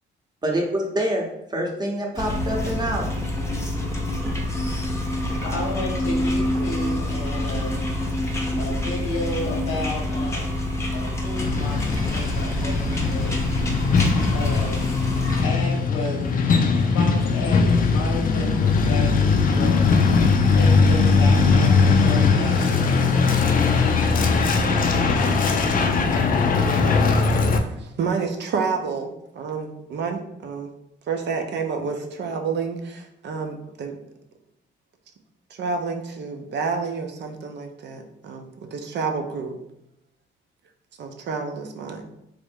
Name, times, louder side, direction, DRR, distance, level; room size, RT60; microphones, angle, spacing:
voice 1, 0.4-1.2 1.5-3.1, right 1 dB, 20° right, 0 dB, 0.8 m, -25 dB
sound 1, 2.1-15.4, left 1 dB, 15° left, 0.7 m, -26 dB
voice 2, 5.3-7.7 8.6-10.6 10.9-13.4 14.3-14.8 15.4-16.3 16.7-19.8 20.5-23.2, left 2 dB, 90° left, -1 dB, 1.0 m, -33 dB
Truck, 11.4-27.6, left 4 dB, 45° left, 0.4 m, -20 dB
voice 3, 27.8-30.7 31.1-34.0 35.5-39.6 41.0-42.0, right 5 dB, 60° right, 4 dB, 0.6 m, -29 dB
3.2 x 2.5 x 3.4 m, 0.82 s
cardioid pair, 90°, 20 cm